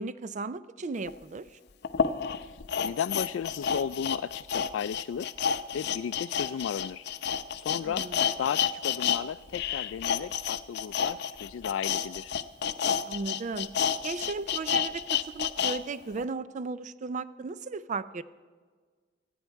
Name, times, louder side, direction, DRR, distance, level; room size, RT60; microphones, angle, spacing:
voice 1, 0.0-1.5 7.9-8.2 13.1-13.7 14.0-18.2, right 4 dB, 40° right, 15 dB, 0.4 m, -35 dB
sound 1, 1.1-1.2 1.8-9.2 9.5-15.8 16.2-16.3, left 8 dB, 60° left, 0.7 m, -30 dB
voice 2, 2.8-5.3 5.7-7.1 7.6-8.1 8.4-12.3, left 8 dB, 85° left, 17 dB, 0.3 m, -34 dB
25.5 x 9.3 x 4.5 m, 1.5 s
head